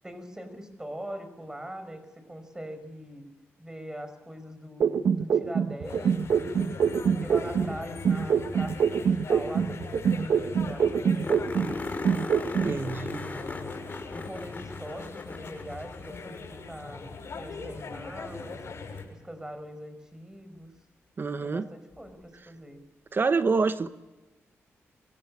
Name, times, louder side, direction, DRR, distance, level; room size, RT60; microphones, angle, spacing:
voice 1, 0.0-3.2 3.6-6.6 7.1-12.1 12.9-13.8 14.1-17.1 17.4-18.6 19.1-20.7 21.4-22.8, equal, 10° right, 5.4 m, -42 dB
sound 1, 4.8-7.7 8.1-11.7 12.1-12.7, right 7 dB, 75° right, 1.1 m, -25 dB
sound 2, 5.8-19.0, left 4 dB, 60° left, 7.3 m, -40 dB
sound 3, 9.8-9.9 10.1-10.2 10.5-10.6 11.2-16.6 19.0-19.1 21.9-22.0, left 3 dB, 30° left, 5.3 m, -38 dB
voice 2, 12.6-13.2 21.2-21.7 23.1-23.9, right 4 dB, 45° right, 1.1 m, -26 dB
25.5 x 16.5 x 9.9 m
cardioid pair, 75°, 5 cm